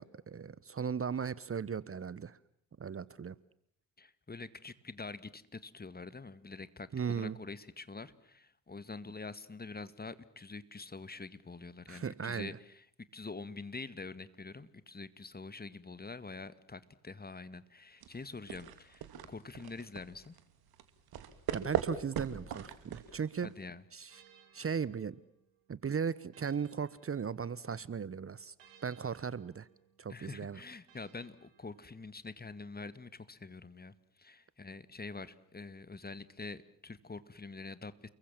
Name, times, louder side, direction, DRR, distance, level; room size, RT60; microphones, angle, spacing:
voice 1, 0.0-2.4 2.8-3.3 6.9-7.4 11.9-12.6 21.5-23.5 23.9-24.2 24.5-25.2 25.7-28.5 28.8-29.7 30.0-30.6, right 6 dB, 35° right, 19 dB, 1.1 m, -37 dB
voice 2, 4.0-12.9 13.1-20.3 23.4-23.8 30.1-38.1, left 3 dB, 25° left, 15 dB, 2.0 m, -46 dB
sound 1, 18.0-23.6, right 9 dB, 65° right, 2.6 m, -40 dB
sound 2, 24.1-27.8 28.6-32.3, right 8 dB, 85° right, 4.6 m, -65 dB
30.0 x 22.5 x 7.4 m, 0.62 s
hypercardioid pair, 45°, 41 cm